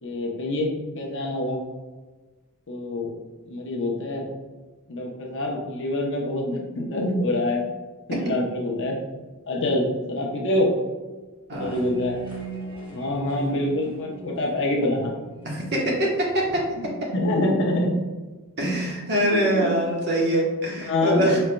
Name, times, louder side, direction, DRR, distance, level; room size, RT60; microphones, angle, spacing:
voice 1, 0.0-1.6 2.7-3.1 3.5-4.3 4.9-7.6 8.1-8.9 9.5-10.7 11.5-12.2 12.9-15.1 16.8-18.0 19.5-19.7 20.8-21.4, left 1 dB, 55° left, 0 dB, 0.8 m, -25 dB
sound 1, 11.5-16.4, right 2 dB, 20° right, 0.9 m, -39 dB
voice 2, 15.4-16.6 18.6-21.4, right 1 dB, 50° right, -2 dB, 1.1 m, -23 dB
5.0 x 4.3 x 2.2 m, 1.2 s
head